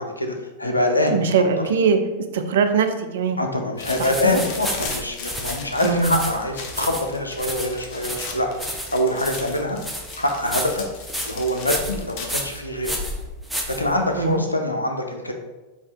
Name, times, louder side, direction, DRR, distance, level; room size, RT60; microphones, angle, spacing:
voice 1, 0.0-1.2 3.4-8.5 8.9-9.8 10.2-10.8 11.3-13.0 13.7-15.3, left 1 dB, 85° left, 4 dB, 0.5 m, -24 dB
voice 2, 1.1-2.0 2.3-3.4 4.0-4.4 5.8-6.1 14.2-14.4, right 5 dB, 60° right, 7 dB, 0.4 m, -21 dB
sound 1, 3.8-12.5, left 4 dB, 45° left, 0.6 m, -38 dB
sound 2, 3.8-14.3, equal, ahead, 0.6 m, -31 dB
4.2 x 2.4 x 3.4 m, 1.1 s
figure-of-eight pair, 90°, 0 cm